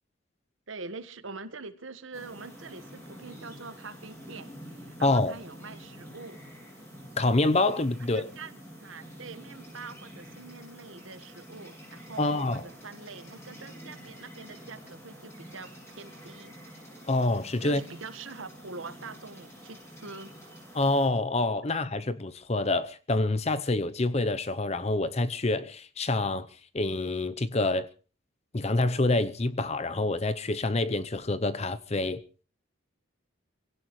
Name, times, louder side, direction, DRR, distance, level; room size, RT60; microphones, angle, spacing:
voice 1, 0.7-6.4 8.0-16.6 17.6-20.3 21.6-21.8, right 4 dB, 75° right, 1.5 m, -44 dB
sound 1, 2.1-21.1, equal, 15° left, 7.6 m, -47 dB
voice 2, 5.0-5.3 7.2-8.3 12.2-12.6 17.1-17.8 20.7-26.5 26.7-27.9 28.5-32.2, left 2 dB, 30° left, 0.7 m, -27 dB
26.0 x 17.0 x 3.2 m
head